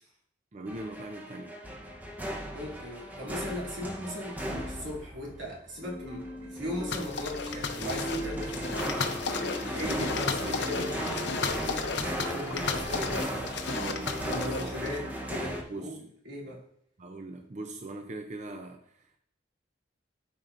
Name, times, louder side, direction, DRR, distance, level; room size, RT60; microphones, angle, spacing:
voice 1, 0.5-1.5 9.7-10.1 13.7-14.8 15.7-16.0 17.0-19.2, right 2 dB, 40° right, 5 dB, 0.5 m, -41 dB
sound 1, 0.7-15.6, equal, 10° right, 0.8 m, -37 dB
voice 2, 2.5-8.9 9.6-13.6 14.2-16.6, left 1 dB, 85° right, -4 dB, 2.5 m, -38 dB
sound 2, 5.8-12.8, equal, 15° left, 0.5 m, -41 dB
sound 3, 6.9-15.0, left 4 dB, 65° left, 0.7 m, -34 dB
12.5 x 4.5 x 2.5 m, 0.70 s
head